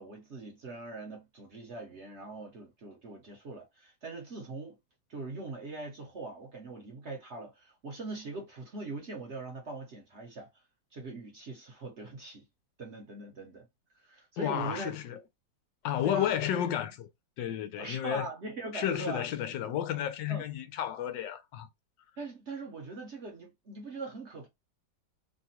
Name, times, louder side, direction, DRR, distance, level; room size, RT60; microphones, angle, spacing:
voice 1, 0.0-4.8 5.1-10.6 10.9-12.4 12.8-13.7 14.0-14.9 16.0-16.4 17.8-19.3 20.3-20.4 22.2-24.5, right 2 dB, 50° right, 0.9 m, -41 dB
voice 2, 14.4-15.2 15.8-17.1 17.4-18.3 18.7-21.7, left 10 dB, 85° left, 1.3 m, -32 dB
3.3 x 2.4 x 2.7 m
omnidirectional pair, 2.0 m